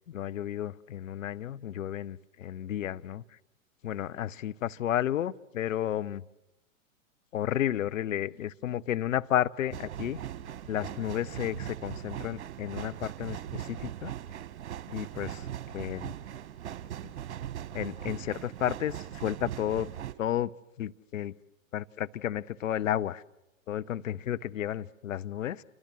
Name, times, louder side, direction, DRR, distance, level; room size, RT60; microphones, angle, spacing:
voice 1, 0.1-3.2 3.8-6.2 7.3-10.2 10.7-14.1 14.9-15.3 15.7-16.1 17.0-17.1 17.7-19.9 20.2-20.5 20.8-21.4 21.7-23.2 23.7-25.6, left 11 dB, 70° left, 14 dB, 1.0 m, -32 dB
sound 1, 9.7-20.1, right 11 dB, 55° right, 1.8 m, -40 dB
29.0 x 25.5 x 7.6 m, 0.92 s
figure-of-eight pair, 105°, 41 cm